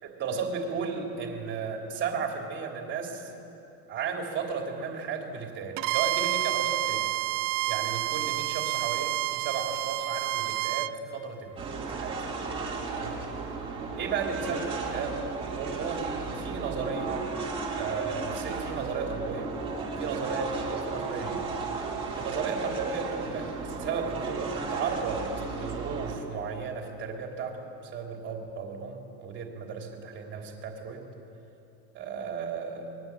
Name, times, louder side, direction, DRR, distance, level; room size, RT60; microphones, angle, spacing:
voice 1, 0.0-3.3 3.9-7.1 7.7-12.2 12.9-13.2 14.0-15.2 15.5-17.2 17.8-19.5 20.0-21.6 22.2-31.1 31.9-32.9, right 5 dB, 30° right, 2 dB, 3.3 m, -34 dB
Bowed string instrument, 5.8-10.9, right 20 dB, 45° right, 0.6 m, -29 dB
sound 1, 11.6-26.2, right 4 dB, 15° right, 3.0 m, -34 dB
27.5 x 21.5 x 8.7 m, 2.8 s
cardioid pair, 175°, 40 cm